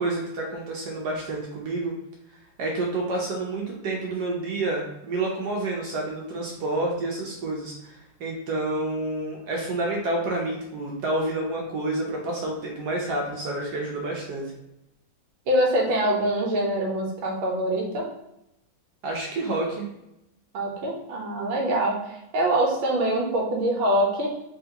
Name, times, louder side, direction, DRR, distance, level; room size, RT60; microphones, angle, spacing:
voice 1, 0.0-1.9 2.6-14.4 19.0-19.9, right 2 dB, 65° right, -1 dB, 1.2 m, -29 dB
voice 2, 15.5-18.0 20.5-24.3, right 1 dB, 90° right, -1 dB, 1.6 m, -24 dB
3.5 x 3.2 x 2.9 m, 0.86 s
omnidirectional pair, 2.2 m